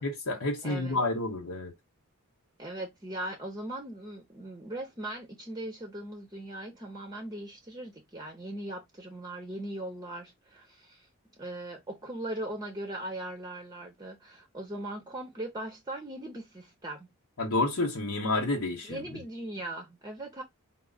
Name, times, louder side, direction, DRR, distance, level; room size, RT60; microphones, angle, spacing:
voice 1, 0.0-1.7 17.4-19.0, left 2 dB, 70° left, 1.0 m, -29 dB
voice 2, 0.6-1.0 2.6-11.1 11.4-17.1 18.8-20.4, right 1 dB, 20° right, 0.7 m, -39 dB
4.6 x 2.0 x 4.0 m
head